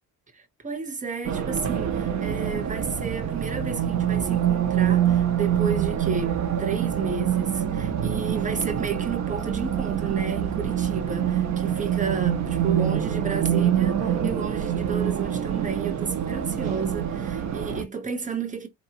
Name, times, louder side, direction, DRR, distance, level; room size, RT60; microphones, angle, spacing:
voice 1, 0.3-18.7, right 5 dB, 25° right, 1.0 m, -32 dB
Race car auto racing, 1.2-17.8, right 9 dB, 55° right, 0.9 m, -25 dB
4.3 x 2.9 x 2.9 m
cardioid pair, 150°, 33 cm